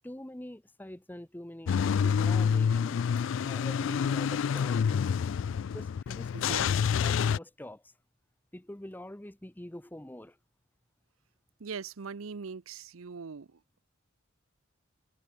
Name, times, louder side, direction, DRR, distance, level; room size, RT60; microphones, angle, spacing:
voice 1, 0.0-3.0 3.4-5.1 5.7-6.7 7.0-7.9 8.5-10.4, left 1 dB, 10° left, 0.7 m, -45 dB
Car / Engine starting / Idling, 1.7-7.4, left 7 dB, 65° left, 0.3 m, -28 dB
voice 2, 6.3-6.9 11.6-13.8, right 5 dB, 90° right, 0.7 m, -41 dB
head